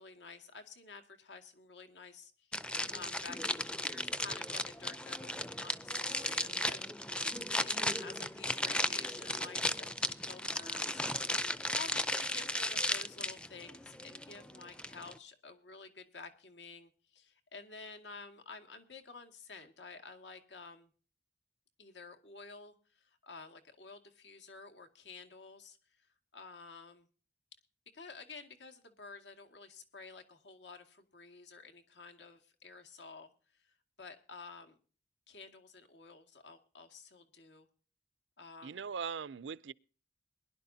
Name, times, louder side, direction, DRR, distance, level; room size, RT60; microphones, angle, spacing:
voice 1, 0.0-2.6 2.9-11.0 11.4-20.9 21.8-26.1 26.3-27.1 27.9-34.7 35.3-37.7 38.4-38.9, left 4 dB, 80° left, 2.1 m, -51 dB
sound 1, 2.5-15.2, left 1 dB, 5° left, 0.5 m, -35 dB
voice 2, 38.6-39.7, right 6 dB, 85° right, 0.5 m, -40 dB
22.0 x 11.5 x 2.8 m
head